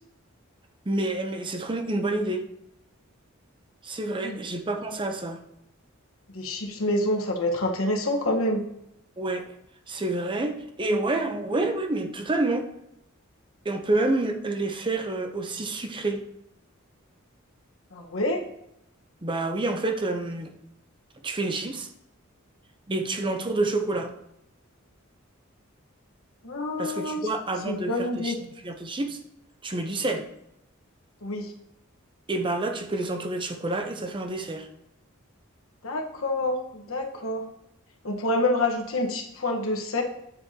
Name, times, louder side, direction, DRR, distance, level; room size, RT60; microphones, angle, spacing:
voice 1, 0.9-2.5 3.8-5.4 9.2-9.5 9.9-12.7 13.6-16.2 19.2-20.5 21.2-21.9 22.9-24.1 26.8-29.2 29.6-30.3 32.3-34.7, right 2 dB, 25° right, 6 dB, 0.6 m, -28 dB
voice 2, 6.3-8.6 17.9-18.4 26.4-27.3 27.6-28.3 31.2-31.5 35.8-37.4 38.0-40.0, left 1 dB, 80° left, 2 dB, 1.2 m, -27 dB
9.3 x 7.4 x 2.8 m, 0.81 s
head